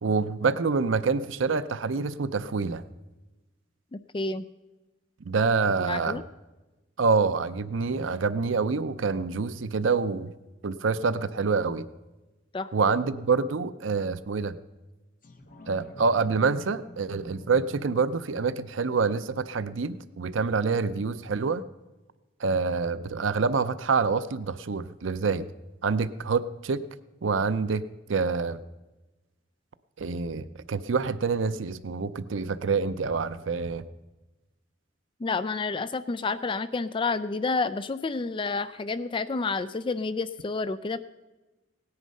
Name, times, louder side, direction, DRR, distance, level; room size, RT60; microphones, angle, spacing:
voice 1, 0.0-2.8 5.3-6.2 7.0-10.3 10.6-11.9 12.7-14.6 15.7-21.6 22.4-25.5 25.8-26.8 27.2-27.8 28.1-28.6 30.0-33.9, right 4 dB, 85° right, 14 dB, 0.6 m, -26 dB
voice 2, 3.9-4.5 5.9-6.2 12.5-12.7 35.2-41.0, left 3 dB, 25° left, 13 dB, 0.4 m, -29 dB
sound 1, 15.2-20.3 20.7-20.8, left 2 dB, 45° left, 1.4 m, -50 dB
18.0 x 9.7 x 5.4 m, 1.1 s
head